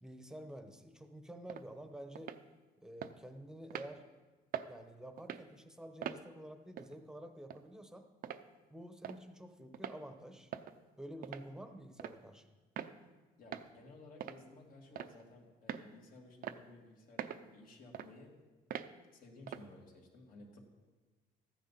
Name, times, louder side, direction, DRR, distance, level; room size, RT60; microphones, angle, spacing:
voice 1, 0.0-2.4 2.8-4.1 4.7-8.1 8.7-10.5 11.0-12.5, right 1 dB, 5° right, 6 dB, 1.1 m, -50 dB
sound 1, 1.5-1.6 2.1-2.4 3.0-3.1 3.7-3.9 4.5-4.7 5.2-5.4 6.0-6.2 6.8-6.9 7.5-7.6 8.2-8.4 9.0-9.2 9.7-10.0 10.5-10.7 11.2-11.5 12.0-12.2 12.8-12.9 13.5-13.7 14.2-14.4 14.9-15.2 15.7-15.9 16.4-16.6 17.2-17.4 17.9-18.1 18.7-18.9 19.5-19.7, right 10 dB, 60° right, 0.6 m, -42 dB
voice 2, 13.4-18.4 19.1-20.7, left 2 dB, 55° left, 0 dB, 2.8 m, -56 dB
14.5 x 9.9 x 4.2 m, 1.3 s
cardioid pair, 110°, 17 cm